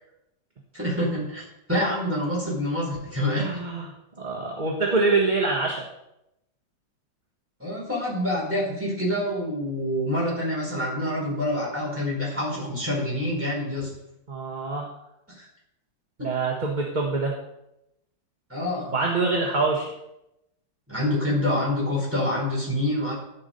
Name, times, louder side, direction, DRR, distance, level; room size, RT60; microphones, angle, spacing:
voice 1, 0.7-3.6 7.6-13.9 15.3-15.5 18.5-18.9 20.9-23.2, left 1 dB, 5° right, -4 dB, 4.8 m, -27 dB
voice 2, 3.3-3.9 4.2-5.8 14.3-14.9 16.2-17.3 18.9-19.9, right 3 dB, 25° right, -1 dB, 1.3 m, -25 dB
11.5 x 8.5 x 5.3 m, 0.87 s
omnidirectional pair, 2.1 m